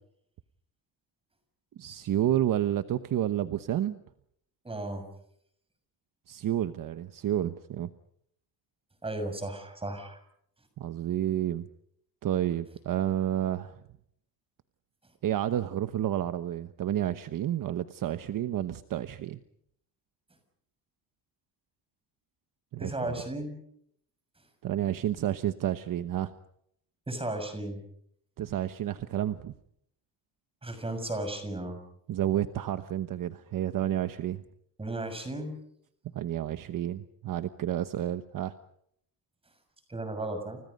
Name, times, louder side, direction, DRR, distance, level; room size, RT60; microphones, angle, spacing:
voice 1, 1.8-4.0 6.3-7.9 10.8-11.7 12.2-13.7 15.2-19.4 22.7-23.2 24.6-26.3 28.4-29.5 32.1-34.4 36.1-38.5, right 11 dB, 50° right, 10 dB, 1.1 m, -30 dB
voice 2, 4.6-5.1 9.0-10.2 22.8-23.6 27.1-27.8 30.6-31.8 34.8-35.6 39.9-40.6, right 1 dB, 15° right, 8 dB, 6.6 m, -34 dB
30.0 x 29.0 x 5.4 m, 0.71 s
cardioid pair, 160°, 42 cm